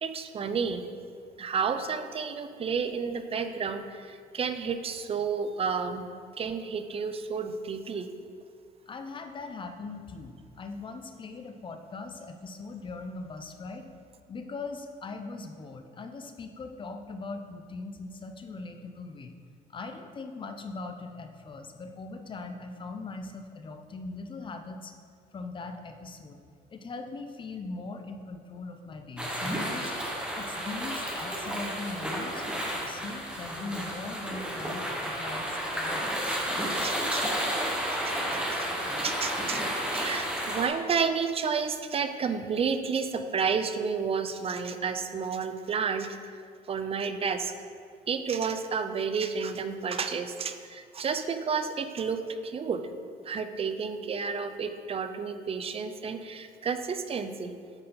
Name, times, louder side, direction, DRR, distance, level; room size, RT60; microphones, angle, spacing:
voice 1, 0.0-0.9 1.4-6.1 6.4-8.1 36.6-37.2 38.0-39.6 39.9-46.4 46.7-47.5 48.1-52.8 53.2-57.5, right 6 dB, 35° right, 8 dB, 0.5 m, -31 dB
voice 2, 8.9-13.9 14.3-19.3 19.7-24.9 25.3-26.4 26.7-29.9 30.3-36.4, left 3 dB, 30° left, 6 dB, 0.6 m, -40 dB
sound 1, 29.2-40.7, equal, 5° right, 1.1 m, -32 dB
8.8 x 4.3 x 3.8 m, 2.1 s
cardioid pair, 110°, 17 cm